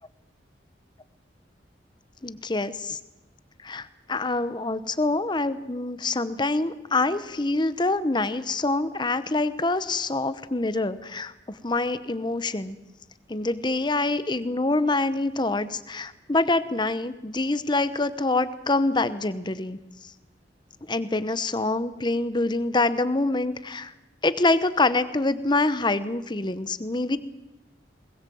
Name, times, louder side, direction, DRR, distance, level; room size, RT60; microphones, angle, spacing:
voice 1, 2.2-3.0 3.6-12.8 13.3-20.1 20.9-23.9 24.2-27.2, left 2 dB, 25° left, 13 dB, 0.9 m, -26 dB
21.5 x 20.0 x 7.8 m, 1.0 s
head